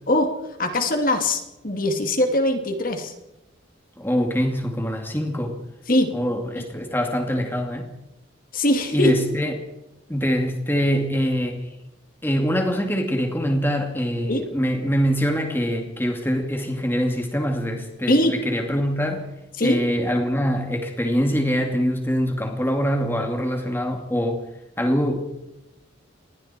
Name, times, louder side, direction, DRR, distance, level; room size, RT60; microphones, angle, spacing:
voice 1, 0.6-3.1 5.9-6.1 6.6-6.7 8.5-9.1 14.3-14.5 18.1-18.4 19.6-19.8, left 1 dB, 45° left, 2.5 m, -21 dB
voice 2, 4.0-5.6 6.1-7.9 8.9-9.6 10.1-11.7 12.2-19.3 19.6-24.4 24.8-25.2, equal, 10° left, 2.5 m, -24 dB
28.5 x 20.5 x 4.5 m
head